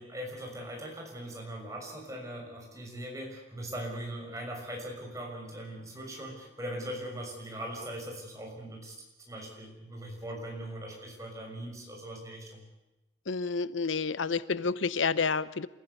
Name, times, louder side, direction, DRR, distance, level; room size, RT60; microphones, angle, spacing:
voice 1, 0.0-8.9 9.3-12.6, right 1 dB, 15° right, 0 dB, 6.3 m, -40 dB
voice 2, 13.3-15.7, left 5 dB, 90° left, 17 dB, 0.8 m, -29 dB
27.5 x 16.0 x 8.2 m, 0.99 s
head